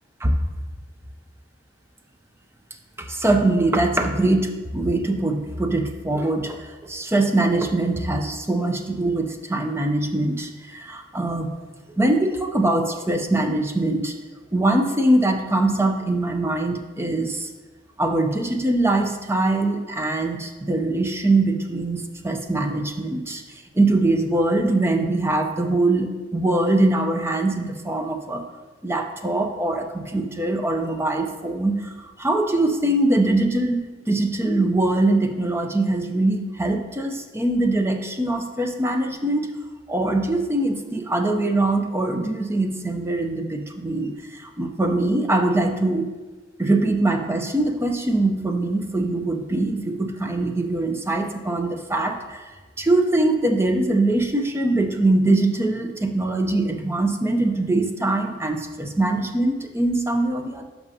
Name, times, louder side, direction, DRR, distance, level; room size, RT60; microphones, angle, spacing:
voice 1, 3.0-11.5 12.0-14.2 14.5-17.5 18.0-23.4 23.7-28.4 28.8-39.5 39.9-46.1 46.6-52.5 52.8-60.6, right 2 dB, 15° right, 4 dB, 0.5 m, -22 dB
10.5 x 6.0 x 2.8 m, 1.3 s
head